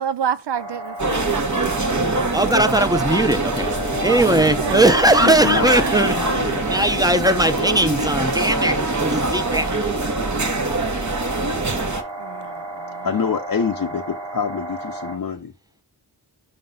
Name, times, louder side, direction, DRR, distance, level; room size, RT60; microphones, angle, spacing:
voice 1, 0.0-2.9 4.0-6.2 12.2-13.1, right 8 dB, 65° right, 0.6 m, -30 dB
sound 1, 0.5-15.2, right 1 dB, 85° right, 2.3 m, -34 dB
sound 2, 1.0-12.0, right 2 dB, 40° right, 1.1 m, -24 dB
voice 2, 2.3-6.1 6.6-9.7, right 1 dB, 10° right, 0.7 m, -19 dB
sound 3, 3.5-8.8, left 8 dB, 90° left, 0.7 m, -36 dB
voice 3, 5.2-7.1 13.0-15.5, left 6 dB, 50° left, 0.7 m, -26 dB
5.2 x 3.9 x 5.3 m
wide cardioid pair, 50°, 44 cm